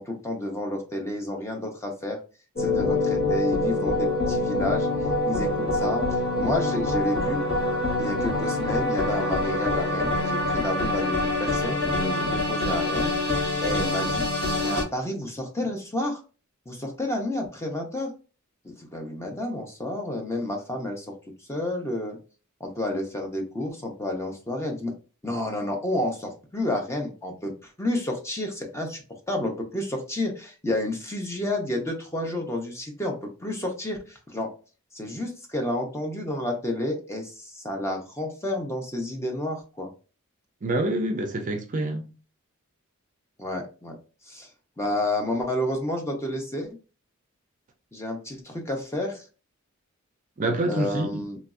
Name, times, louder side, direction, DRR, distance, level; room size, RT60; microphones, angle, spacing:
voice 1, 0.0-2.2 2.6-4.9 5.2-6.0 6.4-7.4 8.0-13.1 13.6-14.3 14.6-16.2 16.7-18.1 18.6-21.2 21.5-22.2 22.6-24.9 25.2-29.0 29.3-34.5 34.9-39.9 43.4-44.0 44.3-44.5 44.8-46.7 47.9-49.2 50.7-51.4, left 1 dB, 15° left, 0.6 m, -30 dB
sound 1, 2.6-14.8, left 2 dB, 50° left, 1.3 m, -25 dB
voice 2, 40.6-42.1 50.4-51.2, right 1 dB, 40° right, 0.4 m, -27 dB
3.0 x 2.5 x 2.4 m
head